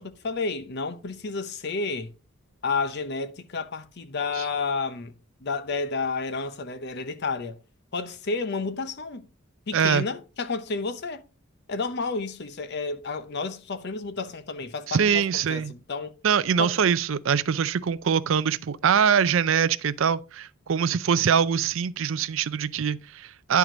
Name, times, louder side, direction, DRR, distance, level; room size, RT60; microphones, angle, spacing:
voice 1, 0.0-2.1 2.6-7.6 7.9-9.3 9.7-11.2 11.7-16.1 16.6-16.8, left 4 dB, 50° left, 0.7 m, -31 dB
voice 2, 9.7-10.0 14.9-15.7 16.2-23.6, right 7 dB, 60° right, 0.4 m, -23 dB
9.8 x 4.7 x 3.7 m
head